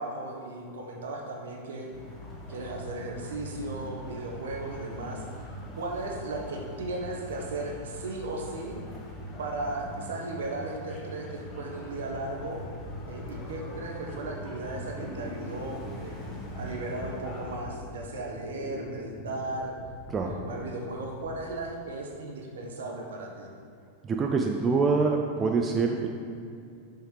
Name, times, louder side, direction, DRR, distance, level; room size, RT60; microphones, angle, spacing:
voice 1, 0.0-1.9 2.5-5.2 5.8-8.7 9.4-12.6 13.1-19.7 20.2-23.5, right 2 dB, 65° right, 0 dB, 0.9 m, -36 dB
sound 1, 1.9-17.6, equal, 30° left, 1.1 m, -42 dB
sound 2, 11.7-22.1, left 1 dB, 45° left, 1.3 m, -44 dB
voice 2, 24.0-26.1, right 4 dB, 20° right, 2 dB, 0.4 m, -25 dB
5.7 x 5.6 x 3.3 m, 2.4 s
figure-of-eight pair, 90°, 0 cm